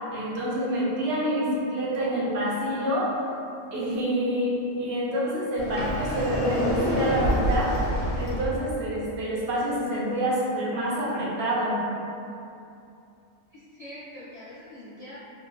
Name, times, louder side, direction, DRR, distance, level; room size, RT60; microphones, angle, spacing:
voice 1, 0.1-3.1 3.7-7.7 8.2-11.8, equal, 60° right, -7 dB, 0.9 m, -27 dB
Sliding door, 5.6-8.6, equal, 90° left, 1.1 m, -27 dB
voice 2, 13.5-15.2, left 1 dB, 60° left, -12 dB, 0.4 m, -43 dB
3.2 x 2.3 x 2.2 m, 2.7 s
omnidirectional pair, 1.3 m